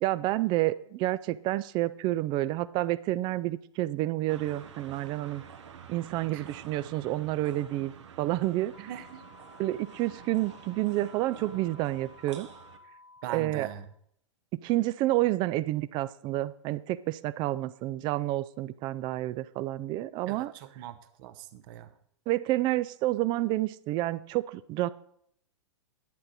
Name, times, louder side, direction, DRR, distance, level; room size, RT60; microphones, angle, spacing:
voice 1, 0.0-5.4 5.9-8.7 9.6-12.5 13.3-13.7 14.6-20.5 22.3-24.9, right 16 dB, 30° right, 16 dB, 0.4 m, -29 dB
sound 1, 4.3-12.8, right 7 dB, 70° right, 1.2 m, -49 dB
sound 2, 8.7-13.7, left 3 dB, 65° left, 1.1 m, -54 dB
voice 2, 8.8-9.2 13.2-13.9 20.3-21.9, right 11 dB, 45° right, 9 dB, 0.8 m, -41 dB
10.5 x 8.6 x 4.1 m, 0.68 s
figure-of-eight pair, 105°, 16 cm